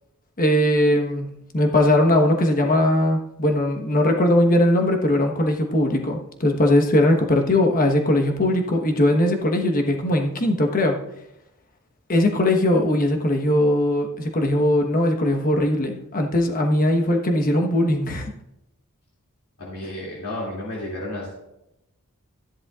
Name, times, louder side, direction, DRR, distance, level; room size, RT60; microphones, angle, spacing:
voice 1, 0.4-1.3 1.5-11.0 12.1-18.3, left 1 dB, 40° left, 3 dB, 1.2 m, -20 dB
voice 2, 19.6-21.3, left 1 dB, 80° left, -5 dB, 2.6 m, -32 dB
13.5 x 10.5 x 2.4 m, 0.85 s
head